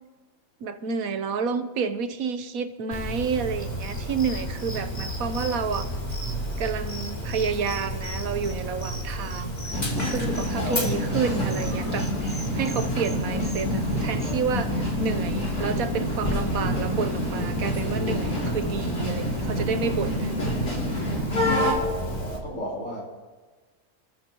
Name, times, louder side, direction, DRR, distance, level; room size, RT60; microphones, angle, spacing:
voice 1, 0.6-5.9 6.6-9.6 10.1-20.3, right 5 dB, 65° right, 9 dB, 1.3 m, -30 dB
Dog, 2.9-22.4, equal, 25° left, 2.9 m, -32 dB
sound 1, 3.6-14.3, equal, 10° left, 1.8 m, -41 dB
sound 2, 9.7-21.7, left 1 dB, 80° left, 3.8 m, -28 dB
voice 2, 21.5-23.1, equal, 55° left, -3 dB, 4.8 m, -34 dB
28.5 x 13.5 x 3.0 m, 1.3 s
omnidirectional pair, 1.6 m